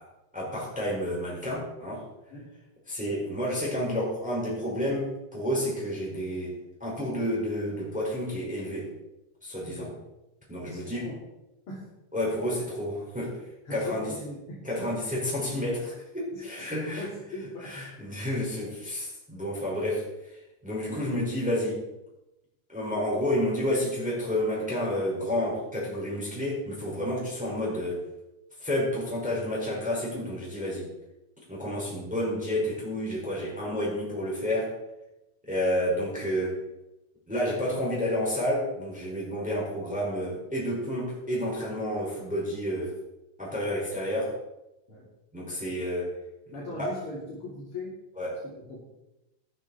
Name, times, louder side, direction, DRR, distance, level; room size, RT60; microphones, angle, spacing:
voice 1, 0.3-2.0 2.9-6.5 6.8-8.9 9.4-9.9 10.5-11.1 12.1-13.4 13.7-14.1 14.6-17.0 17.7-20.0 20.6-21.8 22.7-28.0 28.6-30.9 31.5-34.7 35.4-36.6 37.3-42.9 43.4-44.3 45.3-46.1 46.5-46.9 48.2-48.4, equal, ahead, -5 dB, 4.6 m, -30 dB
voice 2, 9.6-9.9 10.7-11.2 11.7-11.9 13.7-14.9 16.3-17.8 20.9-21.0 31.7-31.9 44.9-45.0 46.5-47.9 48.4-48.8, left 2 dB, 45° left, -5 dB, 3.5 m, -40 dB
13.5 x 12.5 x 4.2 m, 0.94 s
omnidirectional pair, 3.6 m